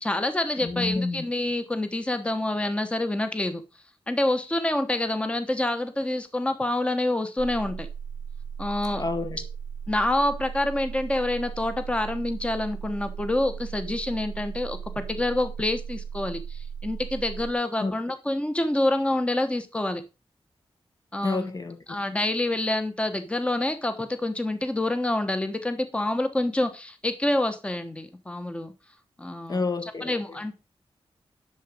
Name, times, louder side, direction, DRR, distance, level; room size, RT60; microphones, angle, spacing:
voice 1, 0.0-3.6 4.1-7.9 8.6-9.0 9.9-20.0 21.1-21.5 21.9-28.7 29.2-30.5, left 1 dB, 10° left, 1.0 m, -27 dB
voice 2, 0.6-1.2 8.9-9.4 17.8-17.9 21.2-21.8 29.5-30.4, left 3 dB, 40° left, 1.2 m, -29 dB
sound 1, 7.4-17.5, right 7 dB, 60° right, 0.6 m, -37 dB
11.0 x 7.1 x 5.2 m
wide cardioid pair, 155°, 10 cm